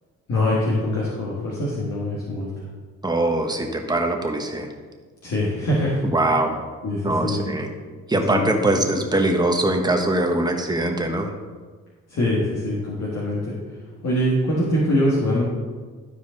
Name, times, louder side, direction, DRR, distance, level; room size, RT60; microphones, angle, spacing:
voice 1, 0.3-2.6 5.2-6.0 6.8-7.4 8.1-8.5 12.1-13.5 14.0-15.4, left 1 dB, 55° left, -6 dB, 2.1 m, -23 dB
voice 2, 3.0-4.7 6.1-6.6 7.0-7.7 8.1-11.3, right 1 dB, 15° right, 3 dB, 1.3 m, -22 dB
13.0 x 4.7 x 4.0 m, 1.4 s
cardioid pair, 90°, 30 cm